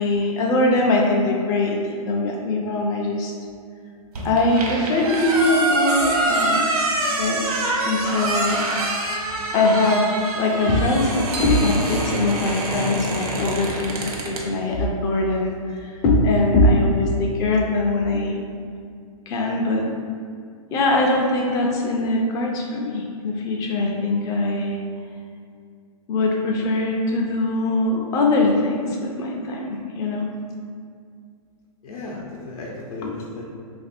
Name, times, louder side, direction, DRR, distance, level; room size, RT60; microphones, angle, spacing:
voice 1, 0.0-3.3 4.2-6.9 7.2-7.4 7.8-8.9 9.5-10.0 10.4-18.4 19.3-19.9 20.7-24.8 26.1-30.3 33.0-33.1, left 2 dB, 20° left, -1 dB, 0.4 m, -22 dB
sound 1, 4.1-14.4, right 2 dB, 85° right, 0.8 m, -25 dB
sound 2, 11.3-13.1, equal, 50° right, 0.4 m, -37 dB
voice 2, 31.8-33.5, left 2 dB, 75° left, -3 dB, 0.7 m, -35 dB
3.0 x 2.5 x 4.2 m, 2.2 s
hypercardioid pair, 145°, 19 cm